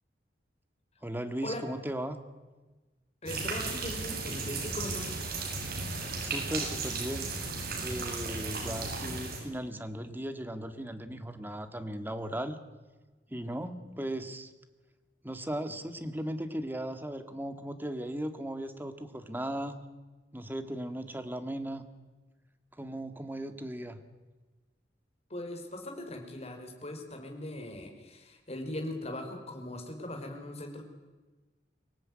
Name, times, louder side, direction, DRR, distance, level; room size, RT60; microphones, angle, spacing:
voice 1, 1.0-2.2 6.2-7.3 7.8-12.6 13.3-14.5 15.2-19.8 20.3-21.9 22.8-24.0, right 1 dB, 10° right, 8 dB, 1.9 m, -37 dB
voice 2, 3.2-5.2 25.3-30.8, left 1 dB, 35° left, 3 dB, 4.9 m, -40 dB
sound 1, 3.3-9.4, right 3 dB, 55° right, 7.1 m, -35 dB
24.5 x 18.0 x 9.7 m, 1.2 s
head